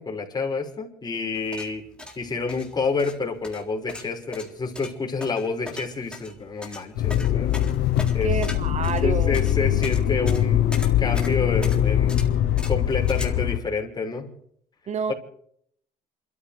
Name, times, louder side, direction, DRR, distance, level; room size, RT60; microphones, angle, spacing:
voice 1, 0.0-1.8 2.2-7.6 8.1-8.3 9.0-12.2 12.7-14.3 15.1-15.2, left 4 dB, 25° left, 5.9 m, -28 dB
sound 1, 1.3-13.2, left 2 dB, 5° left, 3.9 m, -40 dB
Motor vehicle (road), 7.0-13.6, left 11 dB, 75° left, 1.0 m, -22 dB
voice 2, 8.2-9.4 14.9-15.1, right 6 dB, 40° right, 0.9 m, -28 dB
27.5 x 14.0 x 3.5 m
cardioid pair, 110°, 17 cm